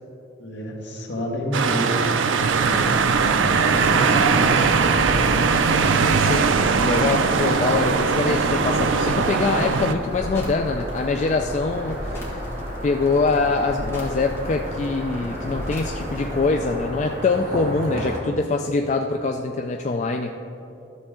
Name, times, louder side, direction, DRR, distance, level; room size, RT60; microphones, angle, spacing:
voice 1, 0.4-2.8 3.3-4.7 5.8-5.9, equal, 65° left, -2 dB, 1.6 m, -30 dB
sound 1, 1.5-9.9, right 5 dB, 80° right, 0.5 m, -20 dB
sound 2, 2.7-16.7, equal, 15° left, 1.6 m, -35 dB
voice 2, 6.2-6.5 6.8-12.5 12.8-20.4, left 3 dB, 35° left, 4 dB, 0.3 m, -24 dB
sound 3, 6.9-18.2, equal, 45° right, 2.0 m, -34 dB
12.5 x 6.8 x 3.7 m, 2.9 s
head